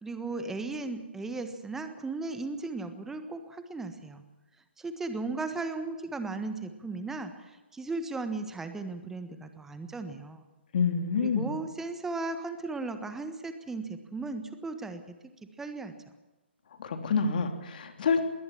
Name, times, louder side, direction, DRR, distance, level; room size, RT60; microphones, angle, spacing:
voice 1, 0.0-4.2 4.8-10.4 11.2-15.1 15.6-15.9, right 3 dB, 5° right, 9 dB, 1.4 m, -36 dB
voice 2, 10.7-11.5 16.8-18.2, left 5 dB, 50° left, 6 dB, 3.2 m, -27 dB
21.0 x 18.0 x 7.3 m, 1.1 s
figure-of-eight pair, 135°, 6 cm